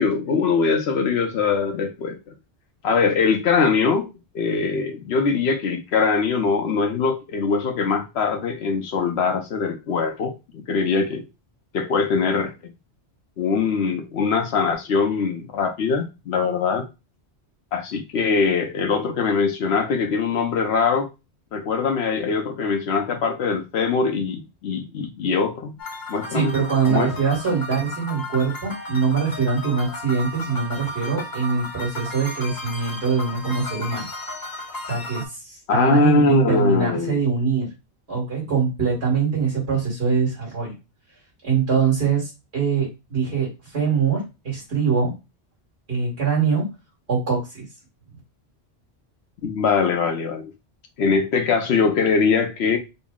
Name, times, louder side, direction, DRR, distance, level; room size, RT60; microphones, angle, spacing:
voice 1, 0.0-2.2 2.8-4.1 4.3-11.2 11.7-12.5 13.4-16.8 17.7-21.1 21.5-25.7 26.1-26.5 26.9-27.1 35.7-37.2 49.4-50.5 51.0-52.8, left 5 dB, 75° left, 0.9 m, -22 dB
sound 1, 25.8-35.2, left 1 dB, 25° left, 0.7 m, -34 dB
voice 2, 26.3-34.0 34.9-37.7 38.1-40.7 41.4-45.1 45.9-46.6 47.1-47.6, right 5 dB, 70° right, 1.8 m, -23 dB
4.0 x 2.0 x 3.6 m
omnidirectional pair, 1.1 m